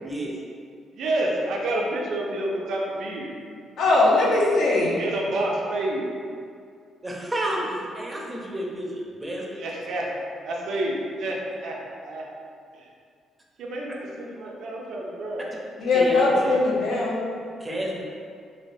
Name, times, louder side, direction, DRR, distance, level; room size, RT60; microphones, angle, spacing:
voice 1, 0.0-0.3 7.0-7.6 7.9-9.6 15.9-16.5 17.6-18.0, right 1 dB, 15° right, -2 dB, 0.5 m, -30 dB
voice 2, 0.9-3.3 5.0-6.1 9.6-10.1 10.4-11.8 12.0-12.2 12.7-12.9 13.6-15.5, right 1 dB, 75° right, -2 dB, 0.5 m, -29 dB
voice 3, 3.8-5.0 15.8-17.2, left 2 dB, 70° left, -5 dB, 0.7 m, -20 dB
3.2 x 2.2 x 2.6 m, 2.3 s
cardioid pair, 90°, 0 cm